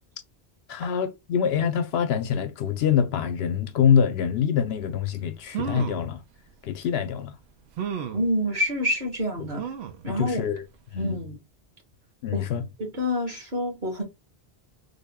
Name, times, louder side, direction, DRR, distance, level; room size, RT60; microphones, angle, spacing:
voice 1, 0.7-6.2 6.6-7.3 10.1-10.6 10.9-11.2 12.2-12.7, left 8 dB, 75° left, 0.8 m, -25 dB
sound 1, 5.1-5.2 5.5-6.1 6.8-6.9 7.8-8.3 9.6-10.0 10.6-10.7 11.0-11.1, right 8 dB, 85° right, 0.9 m, -32 dB
voice 2, 8.1-9.6 10.0-10.4 11.0-11.4 12.3-12.4 12.8-14.0, left 1 dB, 50° right, 1.7 m, -27 dB
3.6 x 2.1 x 3.5 m
omnidirectional pair, 1.0 m